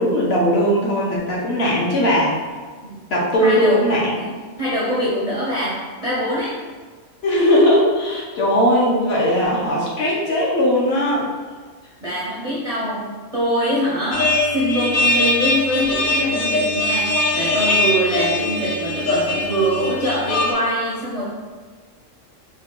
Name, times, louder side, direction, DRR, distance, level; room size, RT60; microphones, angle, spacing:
voice 1, 0.0-2.3 3.1-4.2 7.2-11.3 12.8-13.0, equal, 55° left, -4 dB, 0.9 m, -18 dB
voice 2, 3.4-3.8 4.2-6.6 12.0-21.2, equal, 45° right, -7 dB, 0.4 m, -23 dB
sound 1, 14.1-20.5, left 1 dB, 80° left, 0.4 m, -21 dB
3.6 x 2.2 x 3.6 m, 1.5 s
omnidirectional pair, 1.4 m